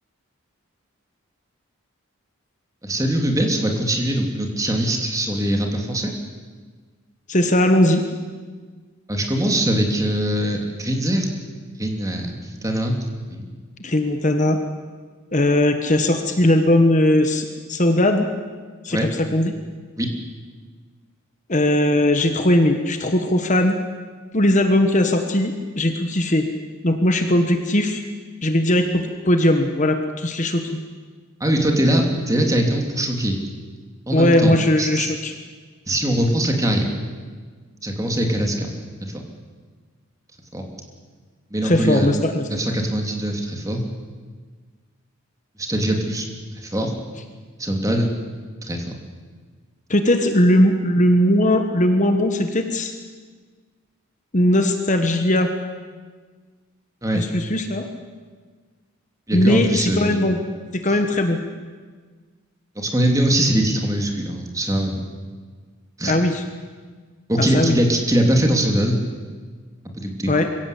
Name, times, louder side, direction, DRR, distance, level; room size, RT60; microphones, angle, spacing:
voice 1, 2.8-6.1 9.1-11.3 11.8-13.0 13.3-13.5 18.9-19.1 20.0-20.1 31.4-33.4 34.1-35.1 35.9-36.9 37.8-38.7 39.1-39.2 40.5-40.6 41.5-42.1 42.5-43.8 45.6-46.3 46.6-46.9 47.6-48.1 48.6-49.0 57.0-57.3 59.3-60.2 60.9-61.0 62.8-65.1 66.0-66.2 67.3-69.0 69.9-70.3, right 1 dB, 15° right, 2 dB, 2.8 m, -22 dB
voice 2, 7.3-8.0 13.8-14.6 15.3-18.3 18.8-19.5 21.5-23.7 24.3-26.5 26.8-28.0 28.4-30.6 34.1-35.3 41.6-42.5 49.9-52.9 54.3-55.5 57.1-57.9 59.3-60.4 60.7-61.4 66.1-66.4 67.4-67.8 70.3-70.5, left 1 dB, 35° left, 6 dB, 1.4 m, -19 dB
24.0 x 16.5 x 8.5 m, 1.5 s
head